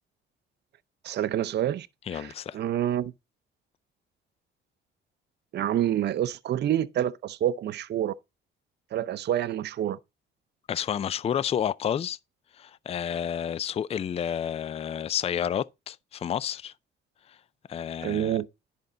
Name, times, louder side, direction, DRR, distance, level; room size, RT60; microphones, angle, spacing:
voice 1, 1.0-1.9 2.1-3.1 5.5-8.1 8.9-10.0 18.0-18.5, right 11 dB, 60° right, 0.6 m, -27 dB
voice 2, 2.1-2.6 10.7-12.2 12.5-16.7 17.3-17.4 17.7-18.4, left 9 dB, 30° left, 0.4 m, -30 dB
10.0 x 5.4 x 3.9 m
cardioid pair, 90°, 20 cm